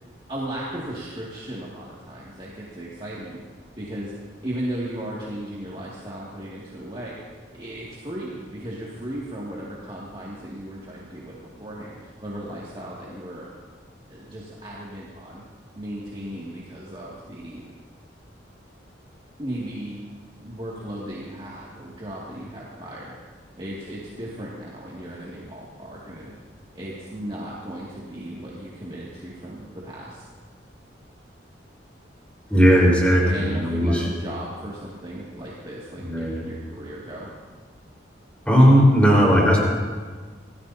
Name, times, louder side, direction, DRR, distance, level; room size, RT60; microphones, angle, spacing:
voice 1, 0.3-3.4 3.8-4.1 4.4-7.1 7.5-13.5 14.1-15.4 15.7-17.6 19.4-23.1 23.5-26.3 26.7-30.3 33.2-37.3, right 1 dB, 30° right, -6 dB, 2.3 m, -36 dB
voice 2, 32.5-34.1 36.1-36.4 38.5-39.6, equal, 5° left, -4 dB, 4.6 m, -17 dB
27.0 x 18.0 x 2.8 m, 1.5 s
head